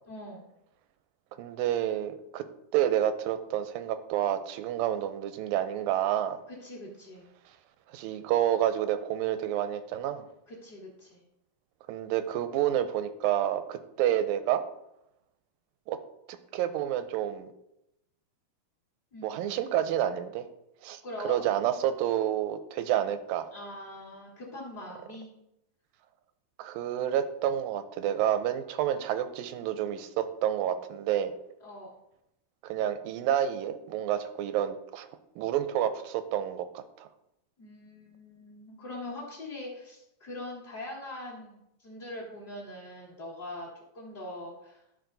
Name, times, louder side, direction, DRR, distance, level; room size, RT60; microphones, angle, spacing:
voice 1, 0.1-0.5 6.5-7.3 10.5-11.2 19.1-19.4 21.0-21.4 23.5-25.3 31.6-31.9 37.6-44.8, left 1 dB, 40° left, -6 dB, 1.6 m, -42 dB
voice 2, 1.4-2.5 2.7-6.4 7.9-10.2 11.9-14.6 15.9-16.0 16.3-17.5 19.2-20.5 20.8-23.5 26.6-31.3 32.6-35.1 35.4-37.1, right 11 dB, 85° right, 11 dB, 2.3 m, -29 dB
12.5 x 4.9 x 3.9 m, 0.84 s
omnidirectional pair, 4.0 m